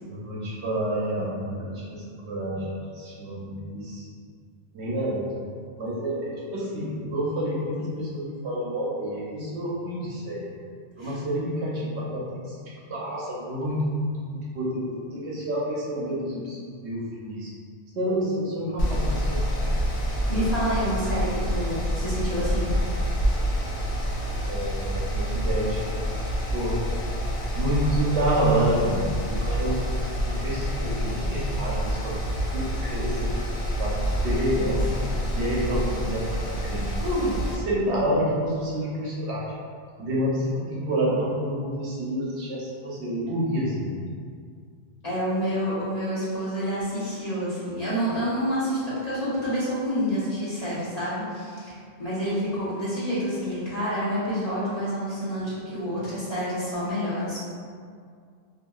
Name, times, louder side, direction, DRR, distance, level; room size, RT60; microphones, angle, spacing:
voice 1, 0.1-4.1 4.7-5.3 5.8-10.5 11.0-12.6 12.9-17.5 17.9-19.6 24.4-25.8 26.5-26.8 27.5-29.0 29.3-29.9 30.2-32.2 32.5-33.4 33.8-34.9 35.3-39.6 40.0-43.9, right 1 dB, 85° right, -5 dB, 1.0 m, -28 dB
Mechanical fan, 18.8-37.5, equal, 75° left, 0.8 m, -27 dB
voice 2, 20.3-22.7 45.0-57.4, equal, 40° left, -11 dB, 0.9 m, -28 dB
2.8 x 2.7 x 2.2 m, 2.1 s
omnidirectional pair, 1.1 m